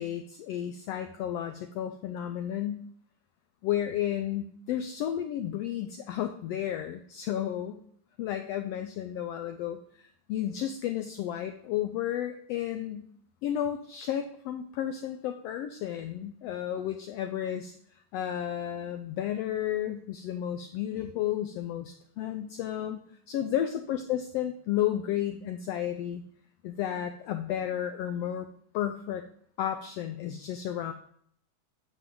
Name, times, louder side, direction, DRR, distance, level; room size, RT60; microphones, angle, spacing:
voice 1, 0.0-2.8 3.6-7.8 8.2-13.0 13.4-17.7 18.1-23.0 23.3-26.2 26.6-28.5 28.7-29.2 29.6-30.9, left 11 dB, 80° left, 7 dB, 1.5 m, -32 dB
9.1 x 6.0 x 3.8 m, 0.64 s
omnidirectional pair, 3.3 m